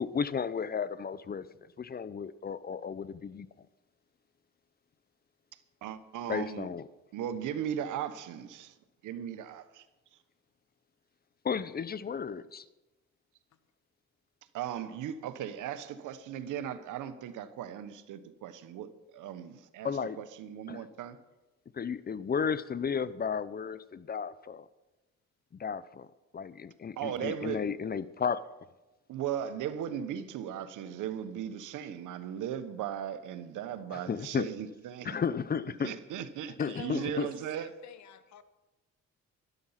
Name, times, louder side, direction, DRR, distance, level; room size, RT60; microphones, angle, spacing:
voice 1, 0.0-1.5 1.8-3.7 6.3-6.8 11.4-12.6 19.8-20.2 20.7-20.8 21.7-24.7 25.5-26.1 26.3-28.5 33.9-34.5 35.0-35.9 36.6-37.3, left 6 dB, 30° left, 0.6 m, -33 dB
voice 2, 5.8-6.7 7.1-8.7 9.0-9.9 14.5-19.9 20.2-21.2 27.0-27.6 29.1-35.2 35.8-37.7, right 9 dB, 85° right, 1.1 m, -37 dB
voice 3, 36.6-38.4, left 9 dB, 70° left, 1.2 m, -47 dB
12.0 x 12.0 x 5.7 m
cardioid pair, 90°, 30 cm